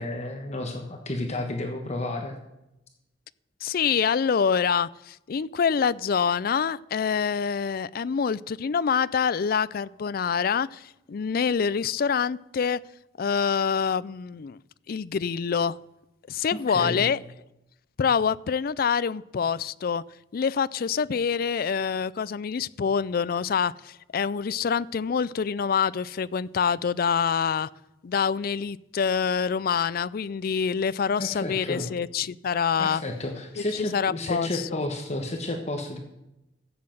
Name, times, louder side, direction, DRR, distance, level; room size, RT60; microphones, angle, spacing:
voice 1, 0.0-2.4 16.5-17.1 31.2-31.9 32.8-36.0, left 1 dB, 35° left, 3 dB, 1.2 m, -31 dB
voice 2, 3.6-12.8 13.2-14.6 14.9-15.8 16.3-17.2 18.0-20.0 20.3-27.7 28.0-33.0 33.9-34.8, left 6 dB, 50° left, 19 dB, 0.4 m, -26 dB
13.5 x 7.7 x 7.6 m, 0.90 s
head